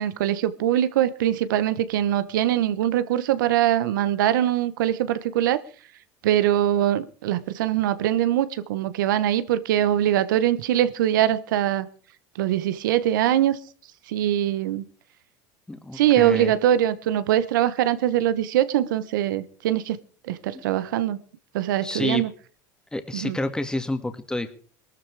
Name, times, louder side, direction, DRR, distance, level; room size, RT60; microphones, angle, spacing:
voice 1, 0.0-5.6 6.2-11.9 12.4-13.6 14.1-14.8 15.9-20.0 20.3-21.2 21.5-22.3 23.1-23.4, right 11 dB, 90° right, 1.2 m, -22 dB
voice 2, 15.7-16.5 21.8-22.3 22.9-24.5, left 1 dB, 5° left, 2.2 m, -29 dB
19.0 x 13.5 x 4.9 m
supercardioid pair, 105°, 10 cm